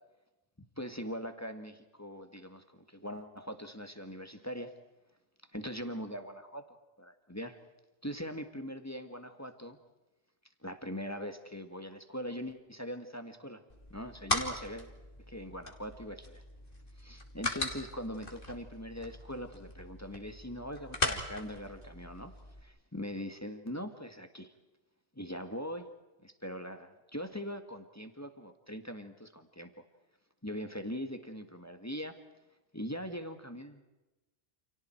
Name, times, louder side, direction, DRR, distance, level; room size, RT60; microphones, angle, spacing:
voice 1, 0.8-4.7 5.5-7.6 8.0-9.8 10.6-13.6 13.9-15.0 15.3-16.4 17.0-22.3 22.6-24.5 25.2-25.9 26.2-29.7 30.4-32.2 32.7-33.8, equal, 15° left, 7 dB, 1.9 m, -41 dB
sound 1, 13.7-22.6, left 2 dB, 50° left, 3.0 m, -39 dB
29.5 x 29.0 x 4.6 m, 1.1 s
omnidirectional pair, 1.1 m